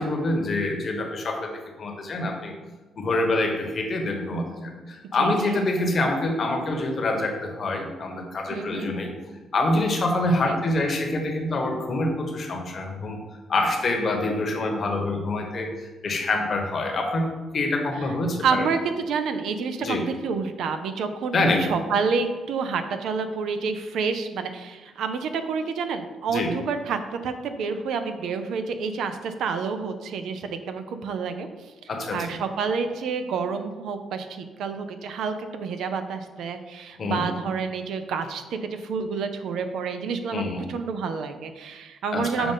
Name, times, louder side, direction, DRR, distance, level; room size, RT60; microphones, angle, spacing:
voice 1, 0.0-2.5 3.0-9.1 9.5-13.2 13.5-17.3 17.5-18.7 19.8-20.0 21.3-21.7 26.3-26.5 31.9-32.3 37.0-37.3 40.3-40.7 42.1-42.5, left 2 dB, 45° left, 3 dB, 1.1 m, -26 dB
voice 2, 5.1-5.6 8.5-8.9 10.4-10.6 18.4-21.4 21.7-31.5 32.1-40.4 40.7-42.5, right 5 dB, 75° right, 8 dB, 0.5 m, -29 dB
6.9 x 2.5 x 5.5 m, 1.3 s
cardioid pair, 90°, 0 cm